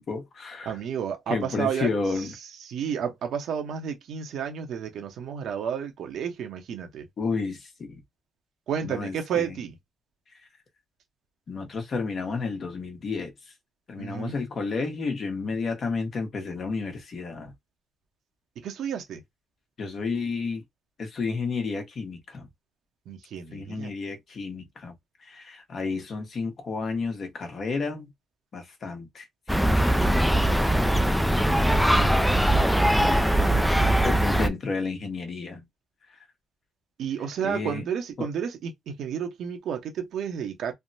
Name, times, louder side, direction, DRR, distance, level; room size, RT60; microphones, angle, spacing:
voice 1, 0.0-0.7 1.3-2.3 7.2-8.0 8.8-9.6 10.3-10.5 11.5-13.3 13.9-17.5 19.8-20.6 21.0-22.5 23.5-24.9 25.2-28.1 28.5-32.5 33.0-33.4 34.0-35.6 37.4-37.9 38.2-38.3, left 4 dB, 50° left, 1.1 m, -32 dB
voice 2, 0.7-1.9 2.6-7.1 8.7-9.7 14.0-14.4 18.6-19.2 23.1-23.9 37.0-40.7, right 8 dB, 75° right, 0.9 m, -31 dB
sound 1, 29.5-34.5, right 1 dB, ahead, 0.4 m, -21 dB
3.3 x 2.1 x 2.7 m
cardioid pair, 90°, 0 cm